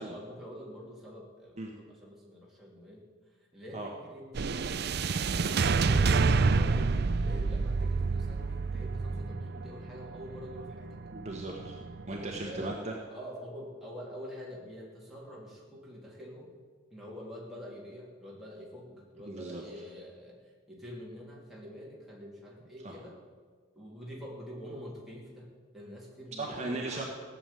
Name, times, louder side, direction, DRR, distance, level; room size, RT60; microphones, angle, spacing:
voice 1, 0.0-3.0 3.5-4.7 5.3-11.0 12.1-12.8 13.1-16.5 16.9-20.4 20.7-23.2 23.7-27.0, equal, ahead, -5 dB, 3.0 m, -46 dB
sound 1, 4.3-12.7, right 4 dB, 50° right, 0.5 m, -29 dB
voice 2, 11.1-13.0 19.3-19.6 22.8-23.0 26.4-27.0, right 2 dB, 30° right, -1 dB, 1.3 m, -37 dB
15.5 x 7.2 x 9.2 m, 1.5 s
head